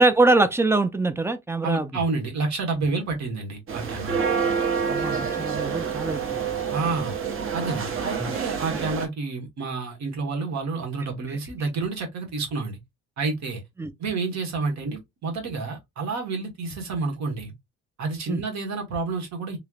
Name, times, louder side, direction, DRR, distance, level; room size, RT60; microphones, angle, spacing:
voice 1, 0.0-1.9 4.9-6.2 8.2-8.3 13.8-13.9 18.3-18.4, right 2 dB, 10° right, 0.3 m, -22 dB
voice 2, 1.6-4.2 6.7-7.1 7.5-12.8 13.2-13.6 14.0-17.5 18.0-19.6, right 4 dB, 65° right, 1.2 m, -29 dB
sound 1, 3.7-9.1, right 6 dB, 45° right, 0.8 m, -27 dB
3.1 x 2.0 x 2.3 m
cardioid pair, 90°, 30 cm